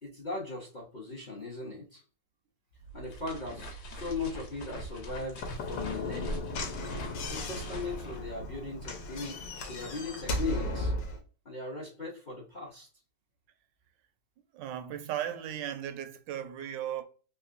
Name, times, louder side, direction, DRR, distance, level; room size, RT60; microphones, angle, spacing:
voice 1, 0.0-2.0 2.9-6.5 7.3-10.9 11.4-12.9, left 3 dB, 45° left, 0.6 m, -38 dB
sound 1, 2.7-9.1, right 2 dB, 65° left, 1.4 m, -42 dB
Slam / Knock, 5.3-11.2, left 1 dB, 85° left, 1.4 m, -36 dB
voice 2, 14.5-17.0, right 10 dB, 85° right, 1.3 m, -36 dB
3.6 x 2.9 x 2.4 m
omnidirectional pair, 1.9 m